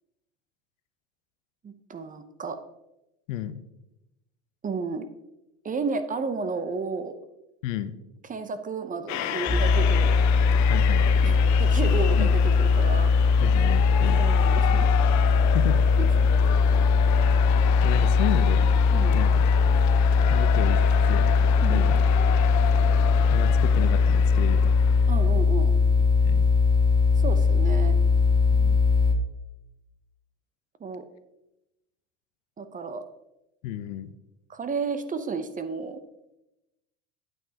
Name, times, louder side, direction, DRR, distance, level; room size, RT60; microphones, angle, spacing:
voice 1, 1.6-2.6 4.6-5.1 5.6-7.1 8.3-10.2 11.2-13.1 14.1-14.9 16.0-16.1 18.9-19.2 21.6-22.0 25.1-25.7 27.2-28.0 30.8-31.0 32.6-33.0 34.5-36.0, right 4 dB, 20° right, 10 dB, 0.7 m, -32 dB
voice 2, 3.3-3.6 7.6-7.9 10.7-11.1 12.2-12.3 13.4-14.2 15.5-15.8 17.8-18.7 19.1-19.5 20.3-20.8 21.1-21.3 21.7-22.0 23.3-24.7 26.1-26.5 28.5-28.8 33.6-34.1, left 12 dB, 80° left, 12 dB, 0.8 m, -32 dB
sound 1, 9.1-25.3, left 11 dB, 50° left, 0.7 m, -33 dB
sound 2, 9.5-29.1, left 4 dB, 10° left, 1.2 m, -20 dB
8.9 x 8.9 x 2.9 m, 0.93 s
supercardioid pair, 95°, 38 cm